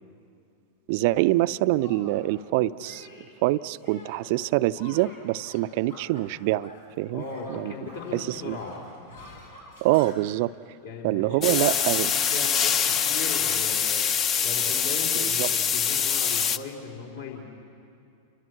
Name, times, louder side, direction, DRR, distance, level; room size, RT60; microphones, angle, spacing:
voice 1, 0.9-3.1 3.4-6.7 7.0-7.2 7.5-7.7 8.1-8.6 9.8-10.5 11.0-12.1 15.1-15.5, right 17 dB, 50° right, 15 dB, 0.5 m, -25 dB
Shatter, 1.1-1.3 1.8-2.3 2.8-3.4 3.8-4.4 4.7-6.9 7.2-10.1, left 2 dB, 80° left, 5.3 m, -48 dB
voice 2, 7.1-8.8 10.8-17.4, left 4 dB, 60° left, 0 dB, 3.5 m, -38 dB
sound 1, 11.4-16.6, left 7 dB, 30° left, 0.8 m, -24 dB
29.5 x 24.5 x 6.3 m, 2.6 s
figure-of-eight pair, 90°, 0 cm